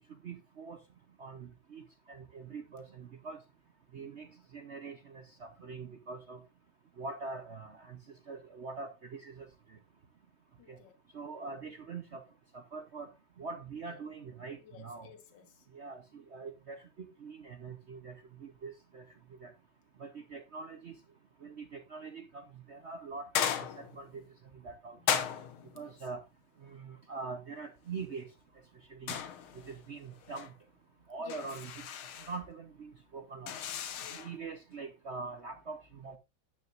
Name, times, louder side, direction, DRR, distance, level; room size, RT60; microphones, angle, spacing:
voice 1, 0.2-0.8 1.2-3.4 3.9-6.4 7.0-9.8 10.7-10.8 11.1-12.2 12.5-13.1 13.4-15.1 15.7-19.5 20.0-20.9 21.4-24.2 24.5-25.0 25.8-26.2 26.6-28.3 28.9-29.2 29.5-30.5 31.1-31.9 32.3-33.5 34.1-36.2, right 4 dB, 60° right, 0.7 m, -44 dB
voice 2, 10.6-10.9 13.9-14.0 14.6-15.7 25.0-25.2 25.5-26.1 31.2-31.5 33.9-34.4, left 7 dB, 65° left, 2.0 m, -54 dB
sound 1, 23.3-24.1 25.1-25.8 29.1-29.8 30.1-30.5 31.3-32.4 33.5-34.4, left 9 dB, 85° left, 1.9 m, -35 dB
9.8 x 9.5 x 2.5 m
omnidirectional pair, 2.2 m